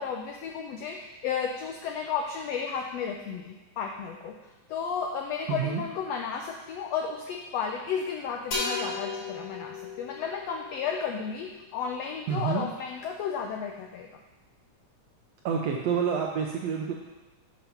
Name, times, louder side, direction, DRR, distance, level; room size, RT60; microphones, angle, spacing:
voice 1, 0.0-14.1, left 6 dB, 85° left, 2 dB, 1.4 m, -33 dB
voice 2, 5.5-5.8 12.3-12.7 15.4-16.9, right 7 dB, 80° right, 1 dB, 1.5 m, -28 dB
sound 1, 8.5-12.1, left 3 dB, 60° left, 3.7 m, -36 dB
7.3 x 5.1 x 5.7 m, 1.1 s
omnidirectional pair, 3.6 m